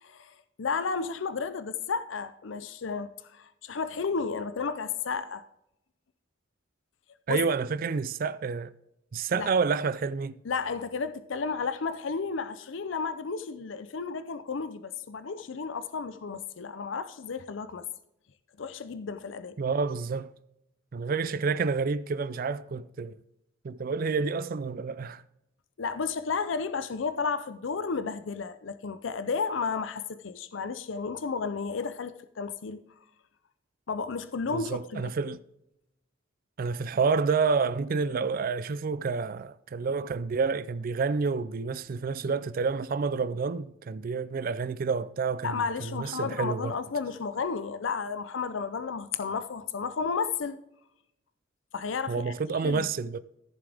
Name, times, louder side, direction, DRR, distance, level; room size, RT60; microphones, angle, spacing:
voice 1, 0.0-5.4 7.3-7.4 9.3-9.5 10.4-17.9 18.6-19.6 25.8-32.8 33.9-35.1 45.4-50.6 51.7-52.3 52.6-52.8, left 5 dB, 70° left, 0.5 m, -32 dB
voice 2, 7.3-8.7 9.1-10.4 19.6-20.3 20.9-23.1 23.6-25.2 34.5-35.4 36.6-46.7 52.1-53.2, right 5 dB, 45° right, 0.4 m, -29 dB
14.5 x 7.0 x 3.4 m
head